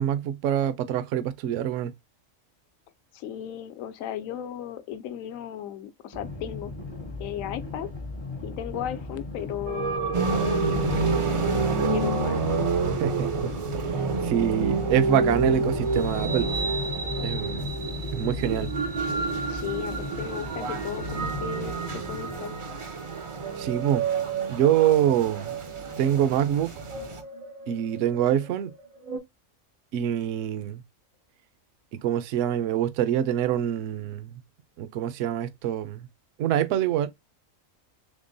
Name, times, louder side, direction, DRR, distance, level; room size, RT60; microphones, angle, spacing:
voice 1, 0.0-1.9 13.0-13.3 14.2-16.5 17.2-17.7 18.1-18.7 23.6-24.0 24.5-25.5 26.0-26.7 27.7-28.7 29.9-30.8 32.0-34.4 34.8-36.1 36.4-37.1, right 10 dB, 75° right, 0.9 m, -25 dB
voice 2, 3.1-6.7 7.2-7.9 8.4-11.2 11.9-12.8 19.5-22.6, left 11 dB, 80° left, 1.0 m, -36 dB
sound 1, 6.1-22.4, left 3 dB, 30° left, 0.5 m, -36 dB
sound 2, 9.7-29.2, right 4 dB, 90° right, 1.4 m, -32 dB
sound 3, 10.1-27.2, right 4 dB, 50° right, 0.3 m, -31 dB
3.7 x 3.4 x 2.5 m
omnidirectional pair, 1.4 m